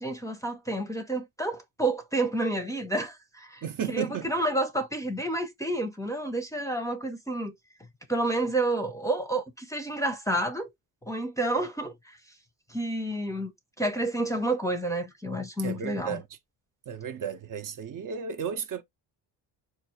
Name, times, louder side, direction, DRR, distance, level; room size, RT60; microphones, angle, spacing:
voice 1, 0.0-7.5 8.1-10.7 11.1-12.2 12.7-13.5 13.8-16.2, right 2 dB, 10° left, 0.5 m, -30 dB
voice 2, 3.6-4.3 15.6-16.2 16.9-18.8, right 7 dB, 50° right, 0.6 m, -33 dB
4.4 x 2.3 x 2.9 m
cardioid pair, 110°, 41 cm